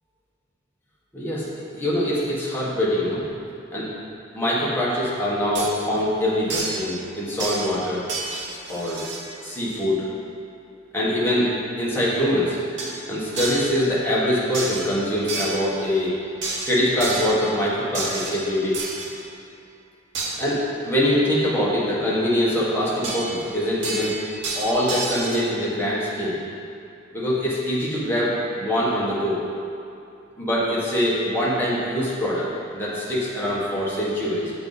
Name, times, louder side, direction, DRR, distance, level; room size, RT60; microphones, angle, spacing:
voice 1, 1.1-3.3 3.7-3.9 4.3-8.1 8.7-9.0 9.4-10.0 10.9-11.5 11.8-12.6 13.1-16.1 16.6-18.7 20.4-24.2 24.6-26.4 27.1-29.4 30.4-32.5 32.7-34.5, equal, 10° left, -8 dB, 1.3 m, -23 dB
sound 1, 5.5-5.7 6.5-6.9 7.4-7.8 8.1-9.3 12.8-13.0 13.4-13.7 14.5-14.9 15.3-15.7 16.4-17.4 17.9-19.1 20.1-20.3 23.0-23.5 23.8-25.4, right 3 dB, 70° right, 1.0 m, -30 dB
6.9 x 4.0 x 3.9 m, 2.6 s
head